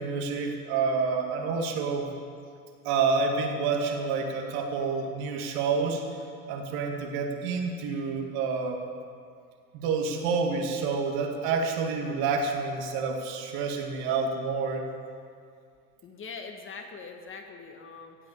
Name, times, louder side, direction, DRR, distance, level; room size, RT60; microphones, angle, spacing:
voice 1, 0.0-2.1 2.8-6.0 6.5-8.8 9.7-14.9, right 4 dB, 50° right, 2 dB, 2.2 m, -28 dB
voice 2, 16.0-18.2, left 4 dB, 25° left, 4 dB, 1.4 m, -42 dB
16.0 x 8.3 x 6.9 m, 2.2 s
hypercardioid pair, 100°, 47 cm